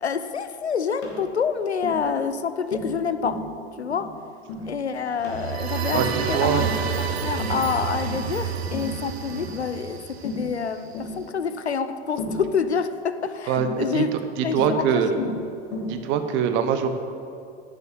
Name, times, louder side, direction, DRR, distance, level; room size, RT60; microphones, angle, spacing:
voice 1, 0.0-3.4 3.8-4.1 4.6-6.7 7.0-14.2 14.4-15.4, left 6 dB, 85° left, 11 dB, 0.5 m, -27 dB
Tap, 1.0-1.2 1.8-2.0 2.7-3.0 3.2-3.5 3.9-4.1 4.5-4.7 5.2-5.5 5.9-6.2 6.6-6.8 7.4-7.6 8.1-8.3 8.7-9.0 9.4-9.6 10.2-10.5 10.9-11.1 12.2-12.5 13.6-13.8 14.6-14.8 15.2-15.4 15.7-16.0, left 2 dB, 50° left, 2.0 m, -33 dB
sound 1, 5.2-10.9, right 7 dB, 75° right, 0.7 m, -29 dB
voice 2, 5.9-6.7 13.5-13.7 13.9-14.0 14.4-15.1 15.9-16.9, right 8 dB, 35° right, 8 dB, 0.8 m, -23 dB
7.3 x 6.4 x 6.8 m, 2.4 s
figure-of-eight pair, 85°, 32 cm